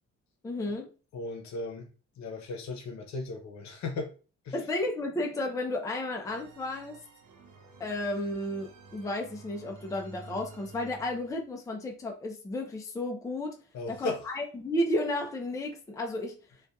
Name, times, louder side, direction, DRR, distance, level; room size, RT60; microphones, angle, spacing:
voice 1, 0.4-0.9 4.5-7.0 7.8-13.6 13.9-16.4, left 1 dB, 10° left, 0.4 m, -33 dB
voice 2, 1.1-1.9 2.2-4.1 4.4-4.5 13.7-14.2, left 3 dB, 65° left, 0.8 m, -36 dB
sound 1, 6.2-11.5, right 4 dB, 75° right, 0.6 m, -51 dB
2.6 x 2.3 x 2.2 m
cardioid pair, 90°, 30 cm